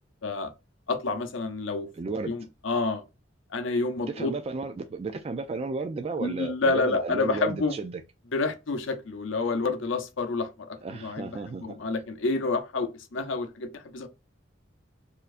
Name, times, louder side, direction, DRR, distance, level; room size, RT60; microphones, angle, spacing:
voice 1, 0.2-0.5 0.9-1.9 2.3-3.0 3.5-4.3 6.2-7.7 8.3-11.3 11.6-14.1, left 3 dB, 90° left, 0.6 m, -29 dB
voice 2, 1.9-2.3 4.1-8.0 10.8-11.8, right 3 dB, 35° right, 0.3 m, -33 dB
4.1 x 2.6 x 2.4 m
head